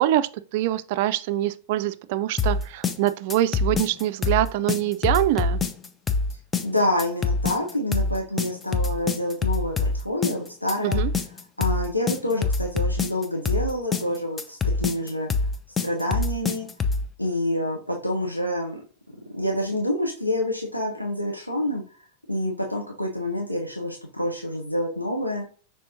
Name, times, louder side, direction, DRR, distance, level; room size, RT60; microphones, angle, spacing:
voice 1, 0.0-5.6 10.8-11.1, right 13 dB, 50° right, 0.3 m, -24 dB
sound 1, 2.4-17.1, left 4 dB, 15° left, 0.4 m, -25 dB
voice 2, 6.6-11.0 11.6-15.3 15.8-16.7 17.2-18.8 19.3-21.8 22.3-25.4, left 1 dB, 85° left, 0.7 m, -27 dB
5.4 x 3.5 x 2.6 m
figure-of-eight pair, 90°, 0 cm